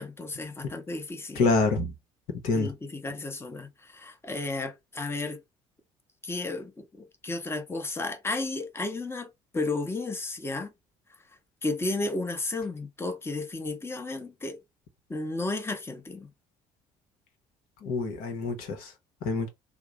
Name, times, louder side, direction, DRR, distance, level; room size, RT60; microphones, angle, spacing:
voice 1, 0.0-1.5 2.5-5.4 6.2-9.3 9.5-10.7 11.6-14.6 15.1-16.3, left 2 dB, 15° left, 0.8 m, -33 dB
voice 2, 1.3-1.9 2.4-2.7 17.8-18.9 19.2-19.5, left 3 dB, 70° left, 0.9 m, -26 dB
3.0 x 2.0 x 3.6 m
hypercardioid pair, 55°, 16 cm